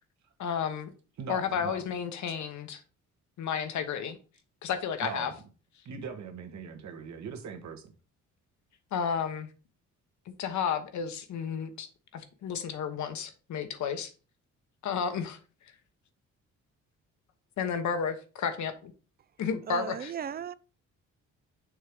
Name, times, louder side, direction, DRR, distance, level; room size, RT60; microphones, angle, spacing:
voice 1, 0.4-0.9 1.3-2.8 3.4-4.2 4.6-5.3 8.9-9.5 10.3-11.9 12.1-14.1 14.8-15.4 17.6-18.9 19.4-20.1, left 7 dB, 70° left, 1.2 m, -32 dB
voice 2, 1.2-1.8 5.0-5.3 5.8-7.9, right 6 dB, 65° right, 1.5 m, -40 dB
voice 3, 19.7-20.5, right 8 dB, 35° right, 0.4 m, -36 dB
6.4 x 3.2 x 5.1 m
cardioid pair, 90°, 30 cm